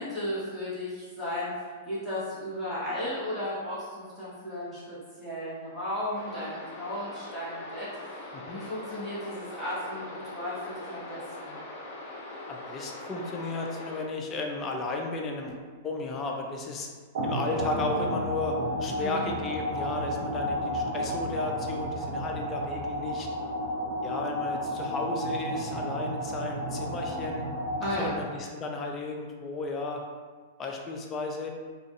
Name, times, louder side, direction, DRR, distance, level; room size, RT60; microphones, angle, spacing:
voice 1, 0.0-1.5 1.8-11.6 19.0-19.3 27.8-28.1, left 1 dB, 15° right, -10 dB, 1.2 m, -35 dB
sound 1, 6.1-14.0, left 2 dB, 45° left, 0.9 m, -42 dB
voice 2, 12.5-16.9 17.2-23.3 24.0-27.4 28.0-30.0 30.6-31.5, left 3 dB, 30° left, 1 dB, 0.4 m, -34 dB
sound 2, 17.1-28.5, equal, 60° right, 0.6 m, -32 dB
2.5 x 2.4 x 2.3 m, 1.5 s
hypercardioid pair, 110°, 0 cm